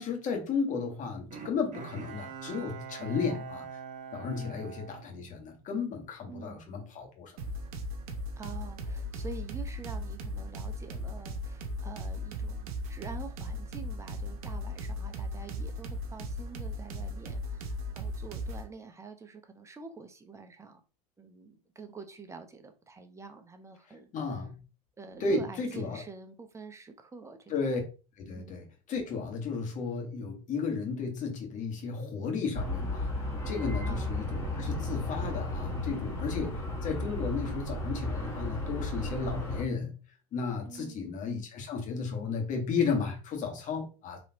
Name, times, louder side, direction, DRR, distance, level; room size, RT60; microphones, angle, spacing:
voice 1, 0.0-3.6 4.1-7.3 24.1-24.6 25.2-26.0 27.5-27.8 28.2-33.1 33.4-40.0 40.3-44.2, left 5 dB, 40° left, 1.5 m, -34 dB
Bowed string instrument, 1.3-5.8 6.3-6.4, right 6 dB, 35° right, 1.3 m, -44 dB
voice 2, 3.0-3.4 4.3-4.7 6.3-6.6 8.4-20.8 21.2-24.1 25.0-27.7 28.3-28.6 33.8-34.2 40.6-41.1, right 4 dB, 15° right, 0.8 m, -47 dB
sound 1, 7.4-18.7, equal, 70° right, 0.8 m, -37 dB
sound 2, 32.5-39.6, left 1 dB, 15° left, 1.6 m, -34 dB
4.2 x 3.0 x 2.9 m
hypercardioid pair, 85°, 19 cm